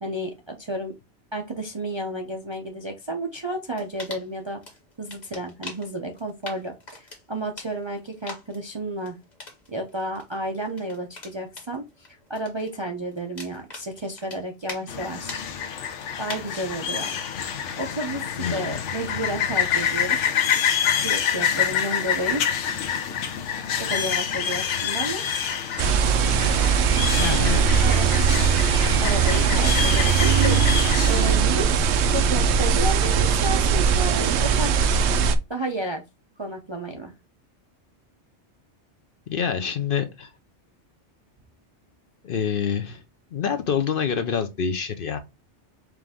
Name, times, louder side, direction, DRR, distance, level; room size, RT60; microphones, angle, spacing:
voice 1, 0.0-0.9 1.3-4.6 5.0-9.2 9.7-15.4 16.2-17.2 17.8-20.3 21.0-22.4 23.8-25.2 27.8-28.1 29.0-35.0 35.5-36.0 36.4-37.1, right 1 dB, 35° right, 0.4 m, -31 dB
sound 1, 3.8-14.9 15.2-15.5 15.8-16.8, left 2 dB, 40° left, 1.3 m, -43 dB
sound 2, 14.9-31.4, left 8 dB, 80° left, 1.0 m, -27 dB
voice 2, 18.4-18.8 27.0-27.9 39.3-40.3 42.2-43.0 43.3-45.2, left 7 dB, 60° left, 0.7 m, -27 dB
sound 3, 25.8-35.4, right 6 dB, 75° right, 0.8 m, -20 dB
4.6 x 2.5 x 3.4 m
omnidirectional pair, 1.2 m